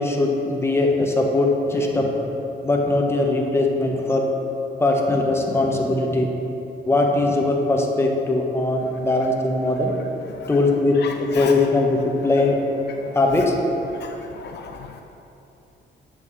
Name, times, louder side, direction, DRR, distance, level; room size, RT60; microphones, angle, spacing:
voice 1, 0.0-2.1 2.6-4.2 4.8-6.3 6.9-9.9 10.5-10.9 11.3-12.6 13.1-13.5, left 2 dB, 10° left, 0 dB, 0.9 m, -20 dB
voice 2, 11.0-11.7 12.9-13.2 13.9-15.0, left 6 dB, 60° left, 4 dB, 0.4 m, -36 dB
7.9 x 3.1 x 5.6 m, 2.9 s
cardioid pair, 90°, 20 cm